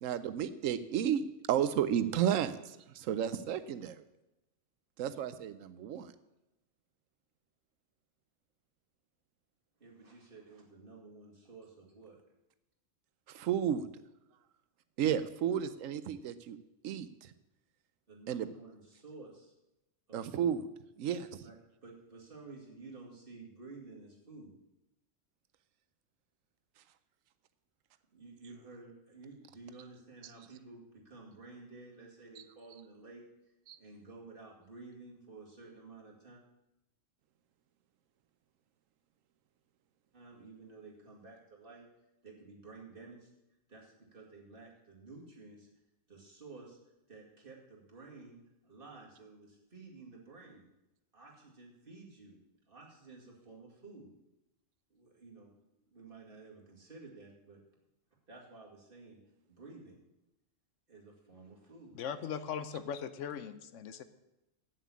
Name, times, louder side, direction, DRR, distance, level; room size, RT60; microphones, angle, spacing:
voice 1, 0.0-4.0 5.0-6.1 13.3-13.9 15.0-16.6 16.8-17.3 18.3-18.5 20.1-20.6 21.0-21.4 33.7-33.8, right 9 dB, 85° right, 13 dB, 1.0 m, -32 dB
voice 2, 9.8-12.2 18.1-19.5 20.1-20.6 21.4-24.5 28.1-33.2 33.8-36.4 40.1-41.9 42.2-43.3 43.7-45.7 46.1-46.8 47.1-50.7 51.1-52.4 52.7-54.1 54.9-57.6 58.3-59.2 59.5-60.0 60.9-62.3, right 3 dB, 45° right, -2 dB, 2.4 m, -52 dB
voice 3, 61.9-64.0, left 7 dB, 75° left, 12 dB, 1.0 m, -39 dB
8.3 x 7.4 x 8.3 m, 0.92 s
omnidirectional pair, 1.3 m